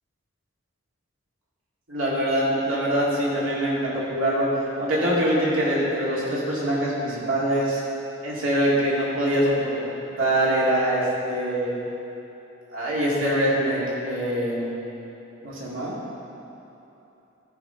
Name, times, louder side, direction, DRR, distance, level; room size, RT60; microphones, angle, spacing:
voice 1, 1.9-4.5 4.8-7.8 8.2-9.8 10.2-11.7 12.7-14.7 15.4-15.9, right 1 dB, 80° right, -6 dB, 2.3 m, -24 dB
13.0 x 5.4 x 4.4 m, 3.0 s
head